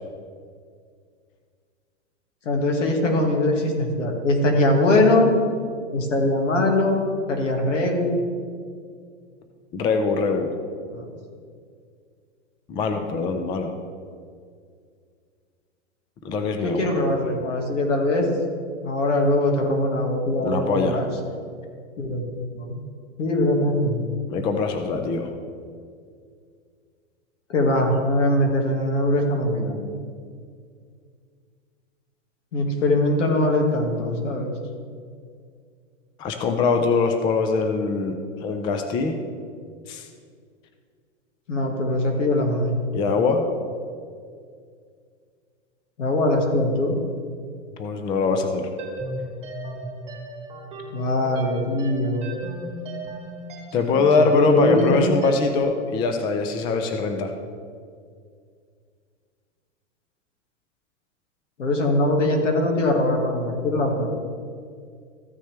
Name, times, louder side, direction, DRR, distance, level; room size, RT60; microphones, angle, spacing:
voice 1, 2.5-5.3 5.9-7.0 7.3-8.2 10.9-11.0 12.9-13.0 16.6-18.3 18.8-21.1 22.0-22.8 23.2-24.0 27.5-29.8 32.5-34.5 41.5-42.8 46.0-47.0 50.9-52.3 54.2-55.1 61.6-64.1, left 1 dB, 90° left, 1 dB, 2.0 m, -22 dB
voice 2, 9.7-10.5 12.7-13.7 16.2-16.9 20.4-21.0 24.3-25.3 36.2-39.2 39.9-40.1 42.9-43.5 47.8-48.7 53.7-57.3, left 4 dB, 15° left, 6 dB, 0.3 m, -22 dB
sound 1, 48.8-55.6, right 2 dB, 15° right, 2.4 m, -36 dB
14.5 x 6.3 x 3.4 m, 2.1 s
hypercardioid pair, 130°, 36 cm